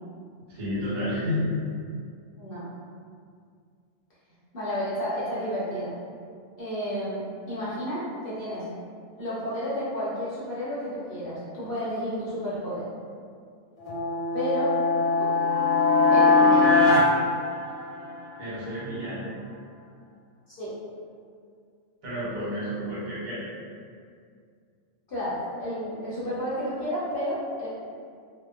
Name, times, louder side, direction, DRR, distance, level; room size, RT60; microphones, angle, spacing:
voice 1, 0.5-1.5 18.4-19.3 22.0-23.4, equal, 85° right, -9 dB, 1.3 m, -30 dB
voice 2, 4.5-5.9 6.6-8.7 9.2-12.8 14.3-14.7 15.2-15.3 16.1-16.7 20.5-20.7 25.1-27.7, equal, 50° left, -10 dB, 0.7 m, -31 dB
sound 1, 13.8-18.2, left 3 dB, 85° left, 1.2 m, -21 dB
2.8 x 2.1 x 2.3 m, 2.2 s
omnidirectional pair, 1.4 m